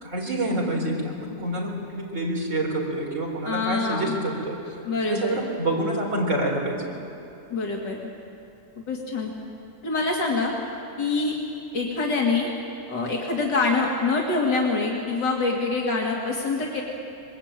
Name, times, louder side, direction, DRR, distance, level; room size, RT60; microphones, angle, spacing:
voice 1, 0.0-4.6 5.1-6.8, right 1 dB, 45° right, -1 dB, 4.6 m, -27 dB
voice 2, 3.4-4.2 4.8-5.4 7.5-8.1 8.8-9.3 9.8-10.5 11.0-11.3 11.7-12.5 12.9-16.8, left 3 dB, 85° left, -1 dB, 3.0 m, -25 dB
24.0 x 21.5 x 9.0 m, 2.8 s
omnidirectional pair, 1.8 m